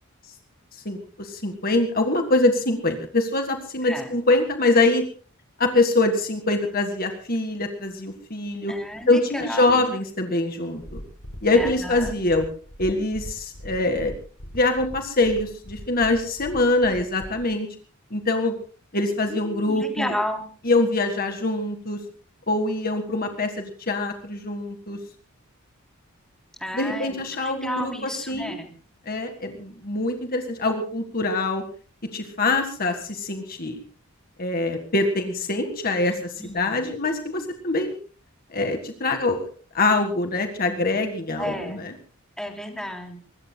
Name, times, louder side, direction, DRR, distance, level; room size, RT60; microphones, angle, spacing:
voice 1, 0.9-5.0 5.6-8.7 9.1-11.0 11.4-12.5 12.8-14.1 14.5-17.7 18.1-18.5 18.9-20.1 20.7-22.0 22.5-25.0 26.7-28.6 29.1-31.6 32.1-33.8 34.4-38.0 38.5-39.4 39.7-41.9, left 2 dB, 40° left, 6 dB, 1.7 m, -24 dB
voice 2, 8.7-9.9 11.5-12.1 19.3-20.5 26.6-28.7 36.4-36.9 41.4-41.8 42.4-43.2, left 1 dB, 5° left, 2 dB, 3.3 m, -32 dB
sound 1, 10.8-17.5, equal, 65° left, 4.3 m, -40 dB
24.0 x 21.0 x 2.3 m, 0.40 s
head